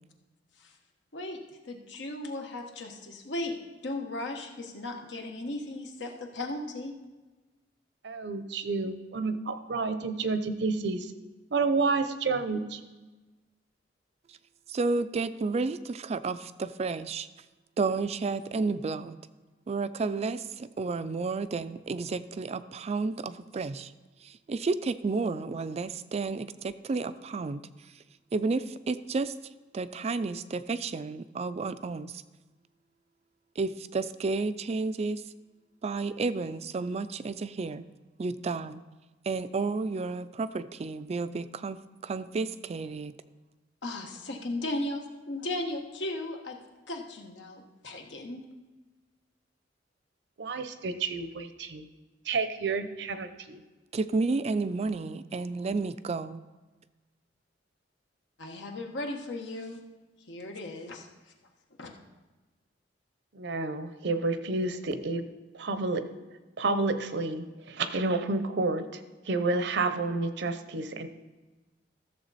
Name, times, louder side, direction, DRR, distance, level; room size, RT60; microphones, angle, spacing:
voice 1, 1.1-3.6 3.8-7.0 43.8-46.6 46.9-48.4 58.4-59.8 60.3-61.1 61.8-61.9, left 2 dB, 80° left, 3 dB, 1.3 m, -36 dB
voice 2, 8.0-11.1 11.5-12.8 50.4-51.9 52.3-53.6 63.3-65.3 65.5-66.1 66.6-69.0 69.3-71.1, right 3 dB, 65° right, 10 dB, 0.7 m, -30 dB
voice 3, 14.7-17.3 17.8-19.2 19.7-23.9 24.2-27.6 27.9-28.0 28.3-29.3 29.7-32.2 33.6-35.2 35.8-37.8 38.2-38.8 39.3-43.1 53.9-56.4, right 3 dB, 35° right, 13 dB, 0.3 m, -31 dB
14.0 x 6.9 x 4.1 m, 1.2 s
head